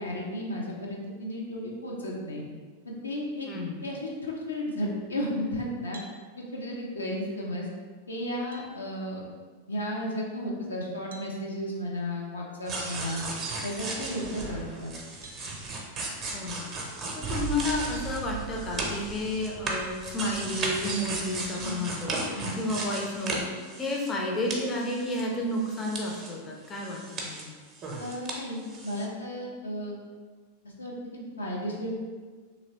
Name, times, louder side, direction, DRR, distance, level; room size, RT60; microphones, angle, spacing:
voice 1, 0.0-2.4 2.8-3.5 3.8-6.0 6.4-7.7 8.1-9.2 9.7-13.3 13.6-14.9 21.6-21.8 22.3-22.6 28.0-30.0 30.8-32.0, left 1 dB, 75° left, -3 dB, 0.6 m, -34 dB
voice 2, 3.5-3.8 16.3-16.7 17.1-27.5, left 1 dB, 20° left, -1 dB, 0.5 m, -31 dB
sound 1, 5.9-6.2 7.9-8.0 8.5-8.7 11.1-11.3 13.1-13.3 15.2-15.4 17.4-17.5 18.2-18.3 19.8-20.0, right 2 dB, 70° right, 0.4 m, -49 dB
sound 2, 12.7-24.2 24.5-26.3 26.6-28.4 28.6-29.0, right 3 dB, 30° right, 0.6 m, -35 dB
3.0 x 2.9 x 2.8 m, 1.5 s
figure-of-eight pair, 90°, 0 cm